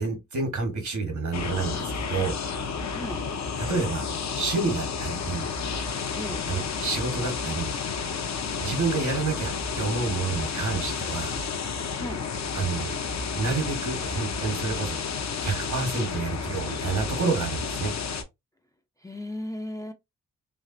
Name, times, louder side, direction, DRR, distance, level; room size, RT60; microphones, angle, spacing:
voice 1, 0.0-2.3 3.6-5.5 6.5-7.7 8.6-11.4 12.5-13.0 13.3-15.0 15.4-17.9, right 4 dB, 70° right, 1.3 m, -29 dB
sound 1, 1.3-18.2, left 5 dB, 60° left, 0.7 m, -31 dB
voice 2, 2.9-3.3 6.1-6.5 11.9-12.3 19.0-19.9, left 1 dB, 10° left, 0.4 m, -35 dB
3.2 x 2.4 x 2.5 m
cardioid pair, 75°, 30 cm